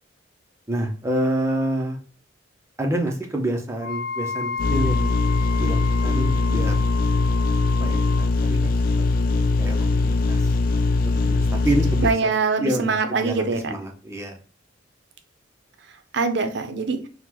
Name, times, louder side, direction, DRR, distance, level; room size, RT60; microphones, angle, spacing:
voice 1, 0.7-2.0 2.8-5.3 5.6-6.7 7.8-8.0 8.4-8.7 9.6-10.5 11.1-12.3 12.6-14.4, right 1 dB, 15° right, 1 dB, 0.5 m, -27 dB
Wind instrument woodwind instrument, 3.8-8.3, left 5 dB, 75° left, 0.7 m, -32 dB
sound 1, 4.6-12.1, left 3 dB, 50° left, 0.3 m, -21 dB
voice 2, 12.0-13.7 16.1-17.0, right 4 dB, 60° right, 8 dB, 0.5 m, -23 dB
3.7 x 2.1 x 2.9 m, 0.41 s
head